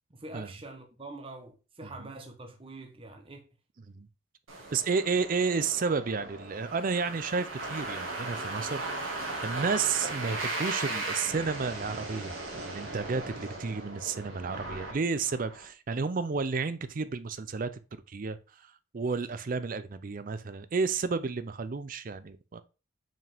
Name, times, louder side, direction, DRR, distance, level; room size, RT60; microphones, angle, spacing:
voice 1, 0.1-3.5, right 2 dB, 25° right, 0.9 m, -45 dB
sound 1, 4.5-15.6, right 2 dB, 85° right, 1.8 m, -37 dB
voice 2, 4.7-12.3 12.6-18.4 18.9-22.6, right 5 dB, 45° right, 0.4 m, -31 dB
5.9 x 4.8 x 3.5 m
head